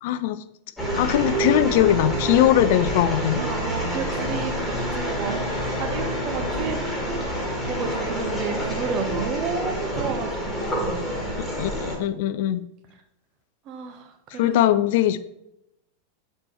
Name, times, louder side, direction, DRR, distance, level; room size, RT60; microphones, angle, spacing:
voice 1, 0.0-0.4 0.9-3.4 11.6-12.6 14.4-15.2, left 12 dB, 50° left, 14 dB, 0.4 m, -21 dB
sound 1, 0.8-12.0, equal, 5° left, 1.6 m, -27 dB
voice 2, 3.4-6.8 7.6-11.0 13.7-14.7, right 5 dB, 35° right, 6 dB, 0.9 m, -32 dB
7.5 x 4.3 x 3.1 m, 0.83 s
figure-of-eight pair, 90°, 0 cm